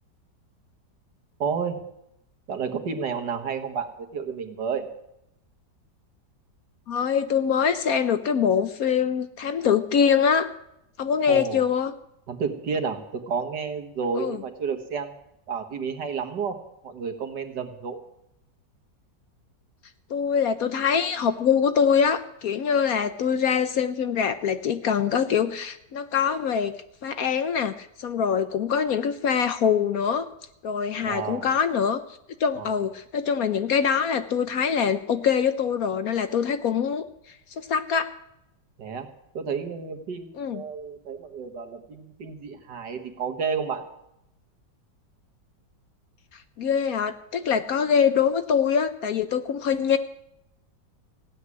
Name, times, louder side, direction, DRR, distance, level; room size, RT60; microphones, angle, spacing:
voice 1, 1.4-1.8 2.5-4.9 11.3-11.6 12.3-15.2 15.5-16.6 16.8-18.1 31.0-31.5 32.6-32.8 38.8-39.1 39.3-43.9, right 6 dB, 70° right, 5 dB, 2.0 m, -31 dB
voice 2, 6.9-10.5 11.0-11.9 14.2-14.4 20.1-26.7 27.0-30.3 30.6-32.0 32.4-37.0 37.6-38.1 40.4-40.6 46.6-50.0, left 7 dB, 60° left, 10 dB, 1.1 m, -24 dB
15.5 x 8.0 x 9.7 m, 0.81 s
omnidirectional pair, 1.9 m